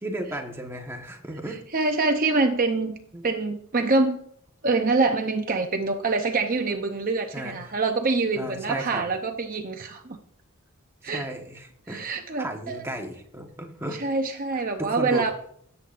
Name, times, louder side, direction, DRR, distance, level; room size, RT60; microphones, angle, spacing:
voice 1, 0.0-1.6 3.1-3.3 7.3-7.8 8.4-9.0 11.0-12.1 12.4-14.0 14.8-15.3, right 1 dB, 10° right, 2 dB, 1.3 m, -34 dB
voice 2, 1.7-3.0 3.2-4.2 4.6-10.2 11.0-11.3 11.9-12.8 13.9-15.3, right 3 dB, 40° right, 4 dB, 0.7 m, -25 dB
17.5 x 8.1 x 2.5 m, 0.66 s
head